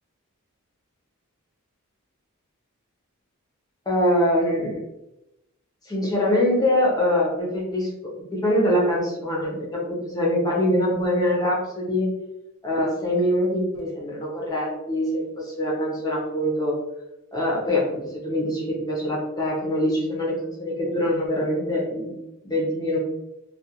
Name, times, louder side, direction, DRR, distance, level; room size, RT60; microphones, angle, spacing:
voice 1, 3.9-4.8 5.9-12.1 12.6-16.7 17.3-22.1 22.4-23.0, left 1 dB, 15° left, -4 dB, 0.6 m, -24 dB
2.4 x 2.2 x 2.8 m, 0.91 s
head